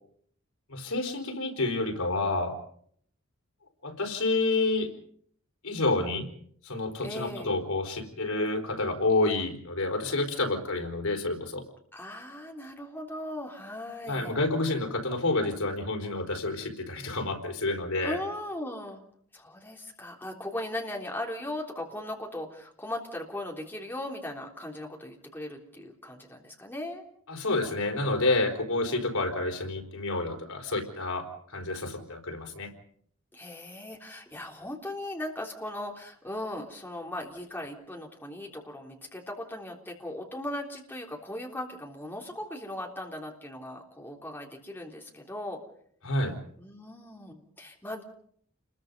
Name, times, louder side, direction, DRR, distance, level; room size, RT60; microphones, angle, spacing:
voice 1, 0.7-2.6 3.8-4.9 5.6-6.3 6.6-11.6 14.1-18.2 27.3-32.7 46.0-46.4, left 2 dB, 85° left, 4 dB, 4.3 m, -29 dB
voice 2, 7.0-7.5 11.9-14.3 18.0-19.0 19.3-27.0 33.3-45.6 46.6-48.0, left 1 dB, 10° left, 0 dB, 3.5 m, -38 dB
29.0 x 22.0 x 5.4 m, 0.64 s
head